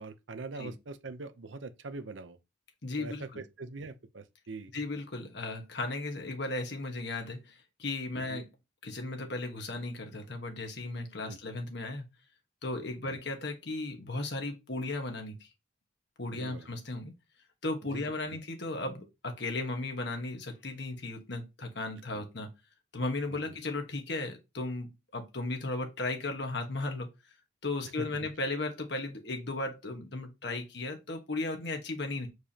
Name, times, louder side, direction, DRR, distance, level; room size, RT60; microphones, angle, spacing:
voice 1, 0.0-2.4 3.0-4.7 8.3-8.4 11.2-11.4 13.0-13.2 16.3-16.7 17.9-18.0 22.1-22.3 23.3-23.6 28.0-28.1, right 3 dB, 75° right, 0.7 m, -43 dB
voice 2, 2.8-3.4 4.7-8.5 8.8-12.0 12.6-15.4 16.2-17.1 17.6-22.5 22.9-27.1 27.6-32.3, left 2 dB, 60° left, 1.3 m, -36 dB
7.0 x 4.7 x 2.9 m
head